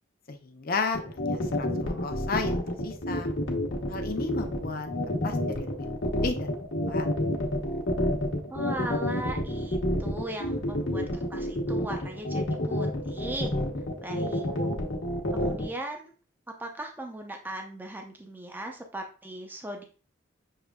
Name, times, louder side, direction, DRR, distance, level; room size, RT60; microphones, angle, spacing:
voice 1, 0.3-3.3 3.9-4.9 5.2-7.1, left 4 dB, 50° left, 6 dB, 0.6 m, -34 dB
sound 1, 0.9-15.7, left 1 dB, 70° left, 1.0 m, -28 dB
voice 2, 8.5-13.5 14.0-14.7 15.3-16.1 16.6-19.8, right 1 dB, 10° right, 3 dB, 0.5 m, -38 dB
6.5 x 3.1 x 2.3 m, 0.36 s
head